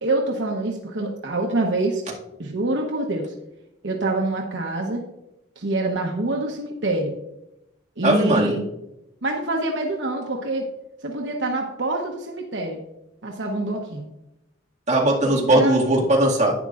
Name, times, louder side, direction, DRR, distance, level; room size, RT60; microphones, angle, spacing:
voice 1, 0.0-2.0 2.4-3.3 3.8-5.0 5.6-7.1 8.0-8.6 9.2-10.7 11.0-12.8 13.2-14.1 15.2-15.8, right 2 dB, 75° right, 1 dB, 1.0 m, -25 dB
voice 2, 8.0-8.5 14.9-16.5, right 1 dB, 40° right, -4 dB, 2.1 m, -19 dB
11.0 x 9.4 x 2.5 m, 0.89 s
head